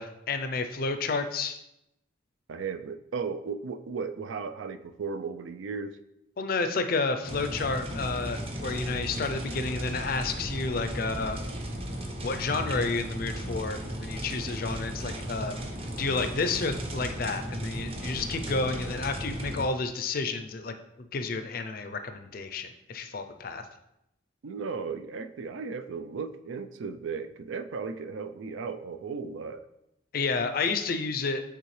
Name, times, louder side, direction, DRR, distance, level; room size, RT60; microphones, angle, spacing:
voice 1, 0.0-1.6 6.4-11.4 12.2-15.6 16.0-20.7 21.1-23.7 30.1-31.4, left 4 dB, 50° left, 8 dB, 0.4 m, -30 dB
voice 2, 2.5-5.9 24.4-29.7, right 5 dB, 80° right, 10 dB, 0.4 m, -35 dB
sound 1, 7.2-19.7, right 1 dB, 30° right, 0.7 m, -35 dB
8.3 x 3.5 x 3.2 m, 0.84 s
head